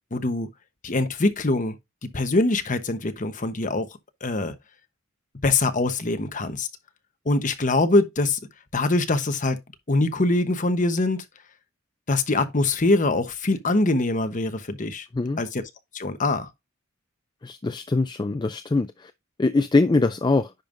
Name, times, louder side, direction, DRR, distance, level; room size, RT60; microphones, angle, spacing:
voice 1, 0.1-0.5 0.8-1.8 2.0-3.9 4.2-4.5 5.4-6.7 7.3-8.4 8.7-9.6 9.9-11.2 12.1-15.1 15.4-15.6 15.9-16.5, left 2 dB, 40° left, 1.0 m, -23 dB
voice 2, 17.4-19.1 19.4-20.5, left 3 dB, 20° left, 0.3 m, -23 dB
10.0 x 5.3 x 2.5 m
head